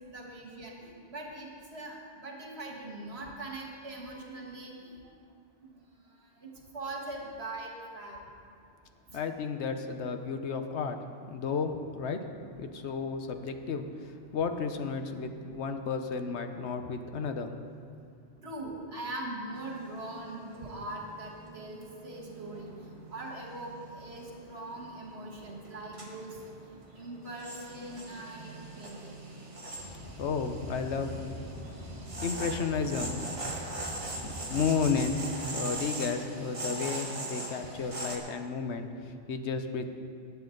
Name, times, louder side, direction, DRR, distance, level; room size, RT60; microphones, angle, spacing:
voice 1, 0.1-5.0 5.6-5.8 6.4-8.2 9.1-9.2 18.4-26.4 26.6-29.2, right 2 dB, 65° right, -1 dB, 1.9 m, -41 dB
voice 2, 9.1-11.0 11.3-12.2 12.6-13.9 14.3-17.5 30.2-31.2 32.2-33.2 34.2-35.2 35.5-39.9, left 5 dB, 70° left, 7 dB, 1.1 m, -32 dB
sound 1, 19.6-38.2, right 2 dB, 30° right, 1.3 m, -42 dB
Car, 29.8-35.2, equal, 45° left, 1.4 m, -43 dB
19.5 x 8.3 x 3.9 m, 2.4 s
omnidirectional pair, 1.2 m